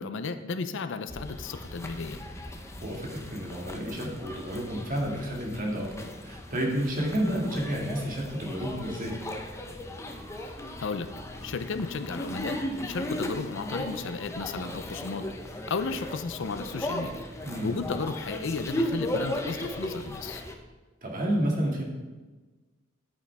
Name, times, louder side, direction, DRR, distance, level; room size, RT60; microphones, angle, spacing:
voice 1, 0.0-2.3 10.4-11.1 11.4-15.3 15.7-17.2 17.6-20.4, left 4 dB, 65° left, 10 dB, 0.6 m, -34 dB
sound 1, 1.1-20.5, left 1 dB, 15° left, 0.8 m, -37 dB
voice 2, 2.8-9.2 17.4-17.9 21.0-21.8, equal, 45° right, -1 dB, 2.1 m, -30 dB
10.0 x 9.1 x 3.5 m, 1.3 s
head